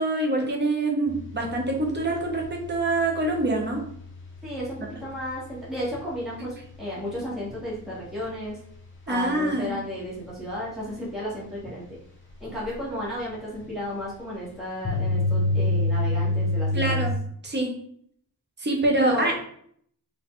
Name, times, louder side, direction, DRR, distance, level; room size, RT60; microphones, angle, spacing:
voice 1, 0.0-3.8 9.1-9.7 16.7-17.1 17.4-17.7 18.6-19.3, right 2 dB, 30° right, 1 dB, 1.0 m, -25 dB
sound 1, 1.1-5.9 6.3-6.5 6.8-6.9 7.5-7.6 12.6-12.7 14.8-17.1, left 2 dB, 35° left, 1.1 m, -28 dB
voice 2, 4.4-8.6 9.1-12.0 12.4-17.0 19.0-19.3, equal, ahead, -7 dB, 1.5 m, -33 dB
4.8 x 2.7 x 3.8 m, 0.63 s
wide cardioid pair, 160°, 36 cm